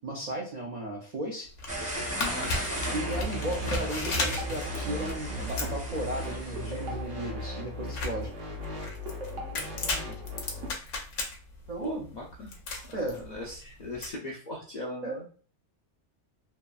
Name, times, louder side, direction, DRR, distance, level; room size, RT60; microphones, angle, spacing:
voice 1, 0.0-1.5 2.9-8.3 11.7-12.1 12.9-13.2 15.0-15.3, right 2 dB, 65° right, -3 dB, 0.4 m, -35 dB
sound 1, 1.5-14.1, left 2 dB, 85° left, 1.0 m, -36 dB
sound 2, 1.7-6.9, equal, 15° right, 0.5 m, -37 dB
voice 2, 2.2-2.5 9.4-10.3 11.8-12.5 13.2-15.2, left 2 dB, 65° left, -3 dB, 0.4 m, -39 dB
sound 3, 2.8-10.7, left 1 dB, 85° right, 1.0 m, -37 dB
2.8 x 2.4 x 2.2 m, 0.42 s
omnidirectional pair, 1.2 m